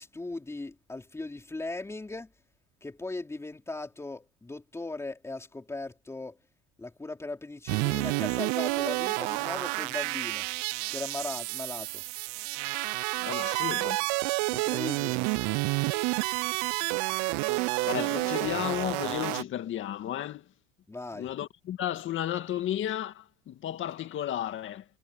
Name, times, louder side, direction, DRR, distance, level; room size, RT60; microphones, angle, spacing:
voice 1, 0.0-2.3 2.8-6.4 6.8-10.5 10.9-12.0 14.5-15.2 20.9-21.3, left 2 dB, 10° left, 3.6 m, -38 dB
sound 1, 7.7-19.4, right 28 dB, 80° right, 0.5 m, -30 dB
voice 2, 13.2-14.1 17.8-20.5 21.1-24.8, left 12 dB, 40° left, 2.0 m, -33 dB
cardioid pair, 150°, 29 cm